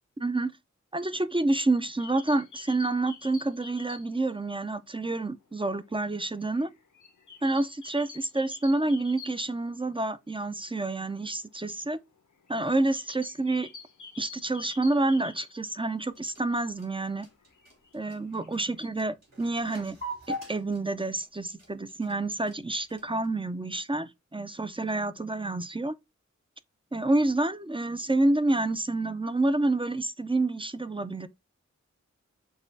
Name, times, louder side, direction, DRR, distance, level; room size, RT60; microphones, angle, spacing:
voice 1, 0.2-0.5 0.9-6.7 7.4-12.0 12.5-13.7 14.2-17.3 17.9-20.0 20.3-26.0 26.9-31.3, right 2 dB, 15° right, 0.4 m, -28 dB
sound 1, 1.8-4.3 4.6-4.7 5.0-9.8 10.2-10.3 10.5-10.7 11.2-16.2 16.7-18.9, left 5 dB, 75° left, 0.7 m, -48 dB
sound 2, 16.0-23.3, equal, 55° right, 2.8 m, -42 dB
6.2 x 2.3 x 2.6 m
wide cardioid pair, 55°, 30 cm